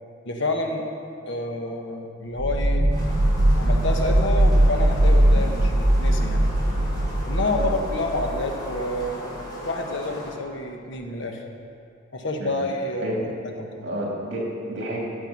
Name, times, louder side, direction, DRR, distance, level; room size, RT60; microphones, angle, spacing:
voice 1, 0.2-0.8 1.3-2.9 3.6-6.4 7.3-11.4 12.1-13.3 13.6-13.9, left 2 dB, 60° left, 3 dB, 1.1 m, -29 dB
sound 1, 2.4-9.1, right 1 dB, 35° right, 0.6 m, -20 dB
sound 2, 2.9-10.3, left 1 dB, 20° left, 2.7 m, -38 dB
voice 2, 13.8-15.0, right 1 dB, 60° right, -3 dB, 2.8 m, -30 dB
13.5 x 6.9 x 5.9 m, 2.4 s
head